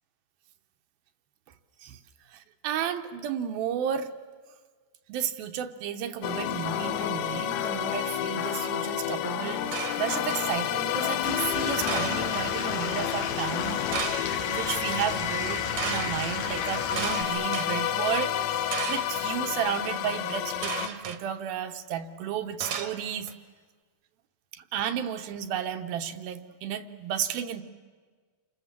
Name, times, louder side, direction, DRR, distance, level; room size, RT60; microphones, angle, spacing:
voice 1, 2.3-4.1 5.1-13.8 14.3-23.3 24.5-27.6, right 9 dB, 75° right, 7 dB, 2.7 m, -33 dB
sound 1, 6.2-20.9, left 11 dB, 90° left, 2.9 m, -30 dB
sound 2, 9.7-10.5 11.9-12.5 13.9-14.5 15.8-16.1 17.0-17.7 18.7-19.2 20.6-21.2 22.6-23.3, right 8 dB, 55° right, 2.2 m, -34 dB
Stream / Liquid, 11.2-17.2, left 5 dB, 60° left, 3.4 m, -35 dB
29.0 x 25.5 x 7.4 m, 1.5 s
omnidirectional pair, 4.4 m